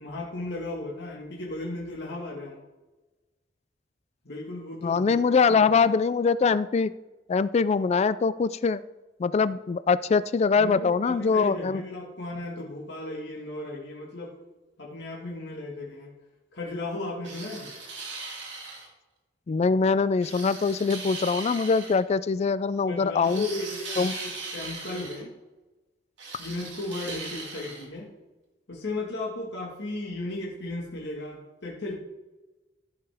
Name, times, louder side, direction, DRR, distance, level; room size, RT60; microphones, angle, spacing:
voice 1, 0.0-2.6 4.3-5.9 10.6-14.4 14.8-16.1 16.5-17.7 22.9-25.4 26.4-28.1 28.7-31.9, left 2 dB, 65° left, -3 dB, 1.7 m, -35 dB
voice 2, 4.8-6.9 7.3-8.8 9.2-11.8 19.5-23.4 24.0-24.2, left 5 dB, 35° left, 16 dB, 0.3 m, -23 dB
sound 1, 17.2-18.9 20.2-22.0 23.2-25.2 26.2-27.8, right 3 dB, 85° right, 2.3 m, -39 dB
14.5 x 5.6 x 3.4 m, 1.1 s
head